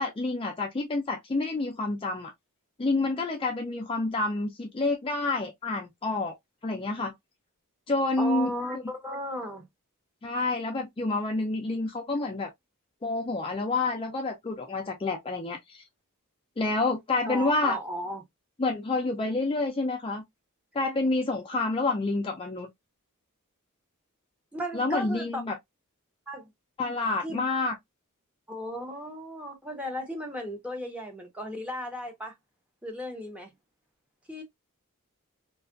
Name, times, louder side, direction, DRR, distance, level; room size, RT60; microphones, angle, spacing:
voice 1, 0.0-2.3 2.8-6.4 6.6-7.1 7.9-8.8 10.2-12.5 13.0-15.8 16.6-17.8 18.6-20.2 20.7-22.7 24.7-25.6 26.8-27.7, left 3 dB, 25° left, 0.4 m, -28 dB
voice 2, 8.2-9.7 17.2-18.2 24.5-25.4 26.3-26.5 27.2-27.4 28.5-32.3 32.8-33.5 34.3-34.4, equal, 5° right, 0.7 m, -35 dB
2.5 x 2.4 x 2.4 m
head